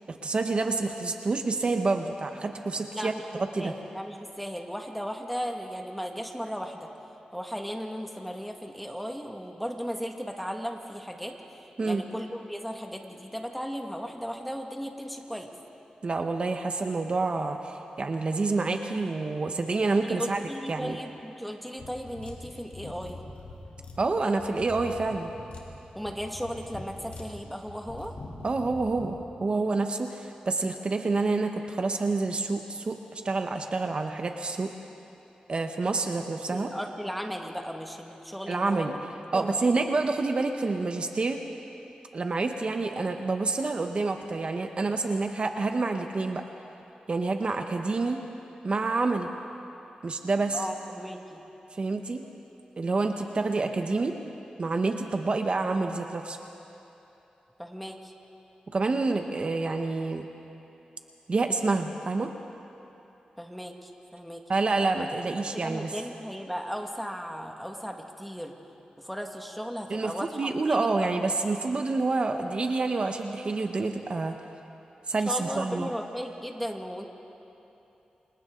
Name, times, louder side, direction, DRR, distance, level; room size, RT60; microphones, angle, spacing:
voice 1, 0.1-3.1 3.5-3.7 11.8-12.0 16.0-20.4 20.7-21.0 24.0-25.3 28.4-34.7 35.5-36.7 38.5-38.9 39.3-41.4 42.1-46.4 47.1-48.2 48.6-49.3 50.0-50.6 51.7-52.2 52.8-54.2 54.6-56.4 58.7-60.3 61.3-62.3 64.5-65.9 69.9-74.3 75.1-75.9, right 3 dB, 45° right, 5 dB, 1.1 m, -28 dB
voice 2, 2.9-6.9 7.3-11.4 11.8-15.5 20.0-23.2 25.9-28.1 36.5-38.9 39.3-39.5 50.5-51.4 57.6-58.1 63.4-64.4 65.4-68.5 69.0-71.3 75.2-77.1, equal, ahead, 2 dB, 1.8 m, -36 dB
sound 1, 21.8-29.1, left 2 dB, 65° left, 3.5 m, -43 dB
29.0 x 26.0 x 3.9 m, 3.0 s
wide cardioid pair, 90°, 2 cm